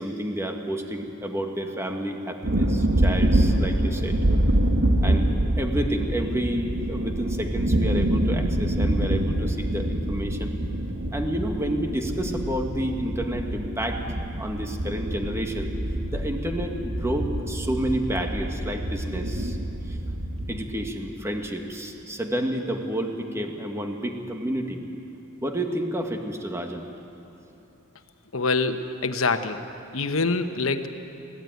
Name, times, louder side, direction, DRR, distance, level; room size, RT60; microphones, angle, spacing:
voice 1, 0.0-4.2 5.0-5.3 5.6-10.5 11.1-14.0 14.4-15.7 16.1-19.6 19.9-20.0 20.5-24.8 25.4-26.9, right 1 dB, 15° right, 3 dB, 1.7 m, -30 dB
sound 1, 2.4-20.7, right 1 dB, 75° right, 1.9 m, -26 dB
voice 2, 28.3-29.6 29.9-30.9, left 3 dB, 85° left, 8 dB, 1.1 m, -25 dB
22.0 x 16.0 x 9.4 m, 2.9 s
head